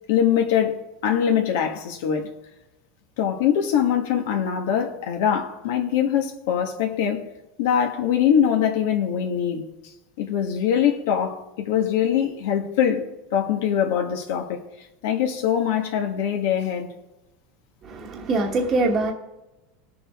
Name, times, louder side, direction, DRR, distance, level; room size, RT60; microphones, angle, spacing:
voice 1, 0.1-0.8 1.0-2.3 3.2-7.2 7.6-9.9 10.2-13.1 13.3-14.6 15.0-16.9, left 9 dB, 70° left, 1.4 m, -23 dB
voice 2, 17.8-19.1, right 2 dB, 30° right, 1.2 m, -23 dB
19.5 x 7.1 x 3.6 m
supercardioid pair, 150°, 0 cm